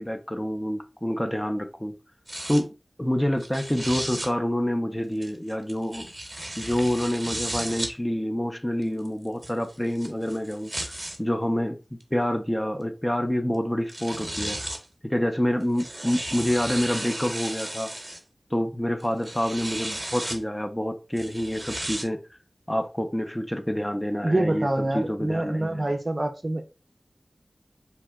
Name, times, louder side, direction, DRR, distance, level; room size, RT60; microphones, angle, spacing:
voice 1, 0.0-1.9 2.5-2.7 3.0-6.1 6.6-10.9 11.2-11.8 12.1-14.6 15.0-17.9 18.5-22.2 22.7-25.9, equal, 15° left, 0.4 m, -27 dB
sound 1, 2.3-2.6 3.4-4.3 5.2-7.9 8.8-11.2 12.0-12.1 13.5-13.6 13.9-14.9 15.6-18.2 19.0-20.4 21.2-22.0, right 1 dB, 25° right, 0.8 m, -34 dB
voice 2, 24.2-26.6, right 1 dB, 45° right, 0.4 m, -26 dB
2.8 x 2.1 x 3.4 m
cardioid pair, 40°, 0 cm